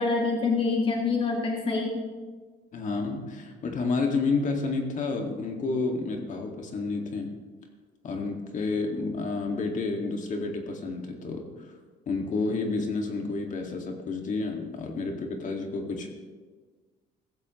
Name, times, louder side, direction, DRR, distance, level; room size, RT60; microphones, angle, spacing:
voice 1, 0.0-2.0, left 4 dB, 30° left, 0 dB, 1.8 m, -26 dB
voice 2, 2.7-7.3 8.0-11.7 12.1-16.1, left 3 dB, 50° left, 2 dB, 2.1 m, -30 dB
16.5 x 14.5 x 3.2 m, 1.4 s
cardioid pair, 110°, 17 cm